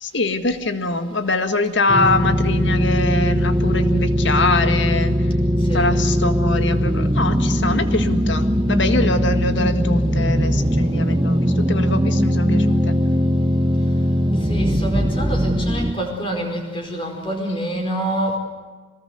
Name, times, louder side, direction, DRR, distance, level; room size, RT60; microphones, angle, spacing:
voice 1, 0.0-5.2 5.7-13.0, left 2 dB, 70° left, 8 dB, 1.8 m, -23 dB
sound 1, 1.9-15.9, equal, 20° right, 1.2 m, -19 dB
voice 2, 14.5-18.4, right 1 dB, 25° left, 3 dB, 4.8 m, -26 dB
23.5 x 20.0 x 8.0 m, 1.4 s
head